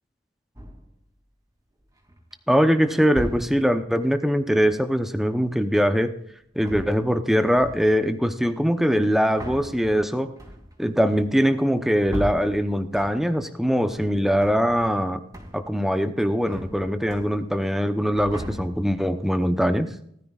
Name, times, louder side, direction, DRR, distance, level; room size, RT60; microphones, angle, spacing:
sound 1, 0.6-1.0 1.8-2.3 3.1-3.8 6.4-7.3 7.6-8.1 8.9-13.5 13.8-15.0 15.3-15.8 16.1-17.7 18.0-19.1, equal, 20° right, 2.7 m, -38 dB
voice 1, 2.5-6.1 6.6-10.3 10.8-15.2 15.5-19.9, equal, ahead, 7 dB, 0.8 m, -22 dB
19.5 x 13.5 x 2.4 m, 0.67 s
head